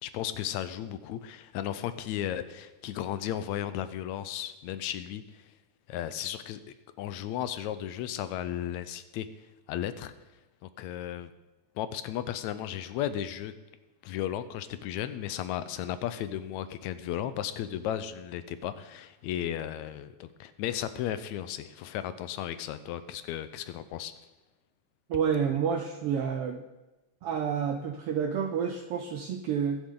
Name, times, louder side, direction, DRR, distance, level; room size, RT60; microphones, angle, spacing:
voice 1, 0.0-5.5 5.9-6.6 7.0-9.3 9.7-10.1 10.6-11.3 11.8-13.5 14.0-24.1, left 11 dB, 80° left, 12 dB, 1.9 m, -35 dB
voice 2, 25.1-26.6 27.2-29.8, right 7 dB, 85° right, 5 dB, 1.3 m, -29 dB
21.0 x 7.3 x 3.8 m, 1.1 s
omnidirectional pair, 3.4 m